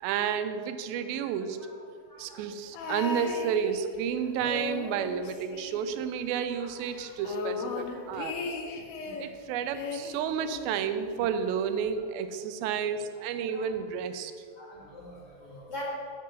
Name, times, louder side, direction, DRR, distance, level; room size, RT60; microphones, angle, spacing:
voice 1, 0.0-1.6 2.2-8.5 9.2-14.3, right 7 dB, 80° right, 9 dB, 2.4 m, -31 dB
voice 2, 1.1-2.5 4.8-4.9 6.5-7.3 7.9-8.7 9.0-9.2 10.4-10.5 11.1-11.2 12.0-12.1 13.5-13.7 14.5-15.8, left 1 dB, 35° left, -5 dB, 1.8 m, -47 dB
sound 1, 2.7-4.0 4.4-6.3 6.5-6.6 6.9-9.3 9.7-11.0 11.9-12.0, left 4 dB, 90° left, 2.7 m, -37 dB
11.5 x 4.8 x 7.5 m, 2.2 s
omnidirectional pair, 4.5 m